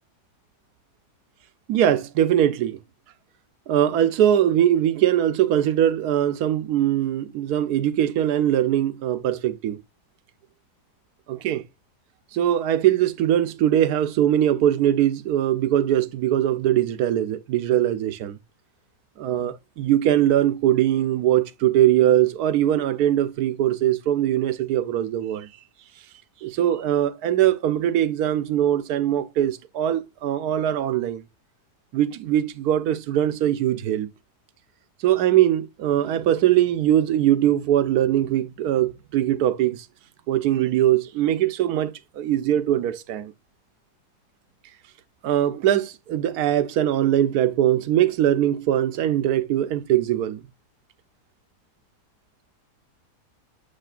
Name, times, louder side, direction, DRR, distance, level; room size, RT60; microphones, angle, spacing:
voice 1, 1.7-2.8 3.7-9.8 11.3-11.6 12.3-18.4 19.2-25.5 26.4-31.2 31.9-34.1 35.0-39.9 40.3-43.3 45.2-50.4, right 11 dB, 75° right, 1.1 m, -21 dB
7.6 x 6.7 x 2.3 m
omnidirectional pair, 1.8 m